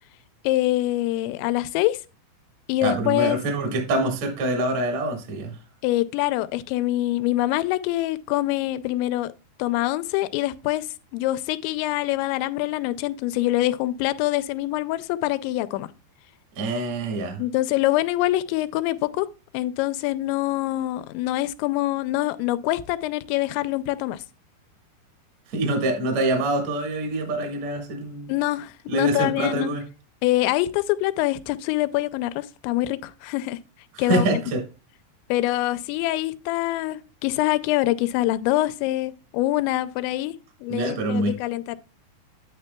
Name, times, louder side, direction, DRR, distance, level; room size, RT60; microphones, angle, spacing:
voice 1, 0.4-2.0 2.7-3.4 5.8-9.3 9.6-10.9 11.1-15.9 17.4-19.3 19.5-24.2 28.3-29.7 30.2-33.6 34.0-34.3 35.3-40.4 40.6-41.8, left 16 dB, 90° left, 2.9 m, -25 dB
voice 2, 2.8-5.6 16.6-17.4 25.5-28.3 28.9-29.8 33.9-34.6 40.7-41.4, right 2 dB, 55° right, 2.1 m, -25 dB
9.8 x 9.2 x 2.2 m
omnidirectional pair, 5.1 m